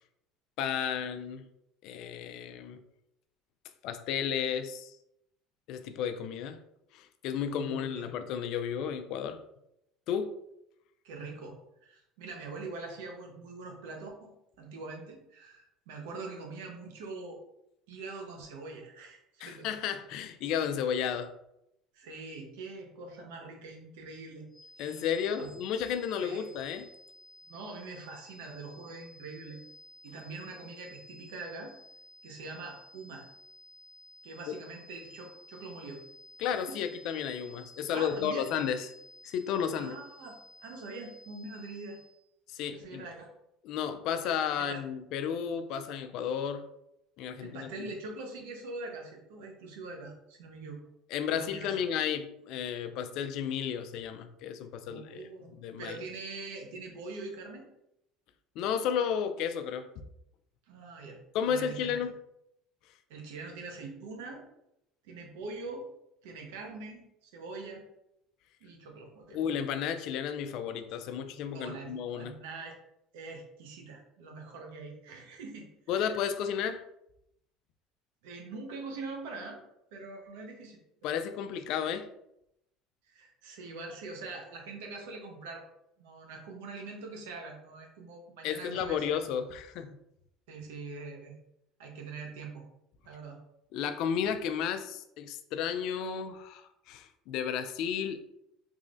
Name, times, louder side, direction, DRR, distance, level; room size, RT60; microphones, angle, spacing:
voice 1, 0.6-1.5 1.8-2.8 3.8-5.0 5.7-6.6 6.9-9.4 10.1-10.3 19.4-21.3 24.8-26.9 34.5-34.6 36.4-38.9 39.2-40.0 42.5-43.1 43.6-46.6 47.2-47.9 51.1-55.2 55.6-56.0 58.6-59.9 61.3-62.1 69.3-72.3 75.9-76.8 81.0-82.1 88.4-90.0 93.7-98.3, left 8 dB, 65° left, 9 dB, 0.3 m, -33 dB
voice 2, 7.5-8.1 11.0-14.3 14.6-17.4 17.9-19.7 21.9-24.5 24.8-25.0 25.4-25.5 26.2-26.4 27.5-29.6 30.0-31.7 32.2-33.2 34.2-36.0 36.7-36.9 37.9-38.5 39.7-40.4 40.6-42.0 42.7-43.3 44.6-44.8 47.4-50.8 51.3-51.8 54.8-55.5 55.8-57.7 60.7-62.0 63.1-64.4 65.0-65.9 66.2-67.8 68.6-69.5 71.5-72.7 73.1-75.7 78.2-79.6 79.9-80.8 83.1-85.6 86.0-89.4 90.5-91.4 91.8-92.6 93.0-93.4, right 3 dB, 85° right, 2 dB, 0.8 m, -43 dB
sound 1, 24.5-42.3, equal, 15° left, 0.8 m, -55 dB
3.6 x 3.1 x 2.5 m, 0.81 s
supercardioid pair, 120°, 0 cm